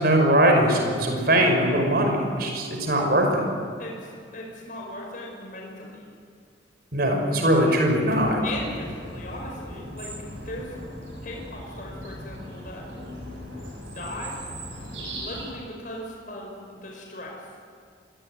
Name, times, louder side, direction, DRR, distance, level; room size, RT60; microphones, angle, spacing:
voice 1, 0.0-3.4 6.9-8.4, right 1 dB, 55° right, 2 dB, 5.6 m, -21 dB
voice 2, 3.8-6.1 8.4-10.1 10.4-10.8 11.2-12.9 13.9-14.4 15.2-17.5, left 1 dB, 45° left, -1 dB, 5.5 m, -38 dB
sound 1, 8.2-15.5, equal, 90° right, 6.8 m, -39 dB
25.0 x 19.0 x 9.6 m, 2.3 s
head